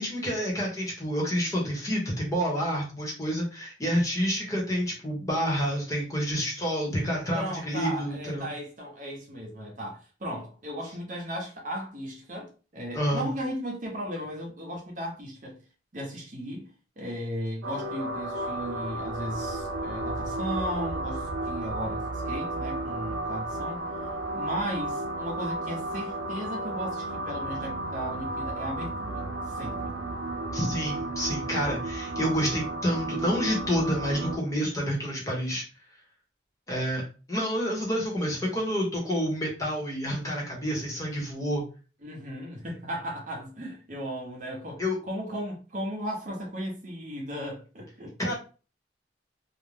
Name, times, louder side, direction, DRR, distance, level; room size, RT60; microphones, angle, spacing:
voice 1, 0.0-8.5 12.9-13.2 30.5-35.6 36.7-37.0 37.3-41.6 44.8-45.0 48.2-48.3, equal, 20° left, 0.9 m, -28 dB
voice 2, 7.3-15.6 15.9-16.7 17.0-23.8 24.3-29.9 42.0-48.3, equal, 45° right, 0.7 m, -36 dB
sound 1, 17.6-34.4, right 2 dB, 90° right, 0.5 m, -33 dB
2.5 x 2.1 x 3.2 m
head